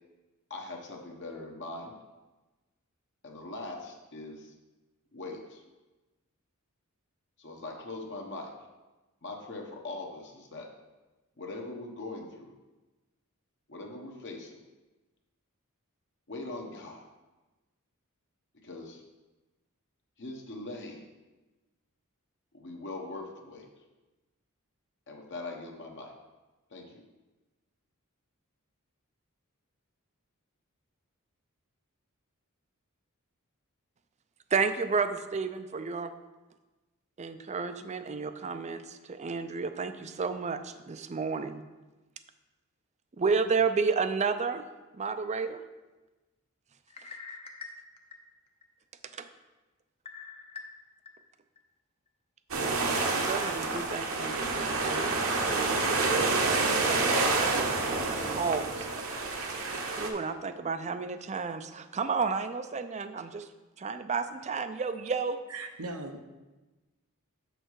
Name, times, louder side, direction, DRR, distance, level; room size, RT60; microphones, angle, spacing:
voice 1, 0.5-1.9 3.2-4.5 5.1-5.6 7.4-8.6 9.2-10.7 11.4-12.6 13.7-14.6 16.3-17.0 18.6-19.0 20.2-21.1 22.5-23.7 25.1-26.1 26.7-27.0, left 2 dB, 55° left, 1 dB, 1.1 m, -41 dB
voice 2, 34.5-36.1 37.2-41.6 43.2-44.6 44.9-45.6 49.2-49.3 53.0-57.7 58.2-58.9 60.0-63.5 63.8-65.4, right 5 dB, 30° right, 10 dB, 0.5 m, -32 dB
sound 1, 46.9-48.6 49.1-49.2 50.1-51.1 51.6-51.7 53.0-54.0 54.5-54.6 55.4-55.6, left 4 dB, 25° left, 0.7 m, -46 dB
sound 2, 52.5-60.1, right 3 dB, 65° right, 1.0 m, -28 dB
voice 3, 65.5-66.2, right 2 dB, 90° right, 5 dB, 0.9 m, -38 dB
6.7 x 6.6 x 4.7 m, 1.1 s
head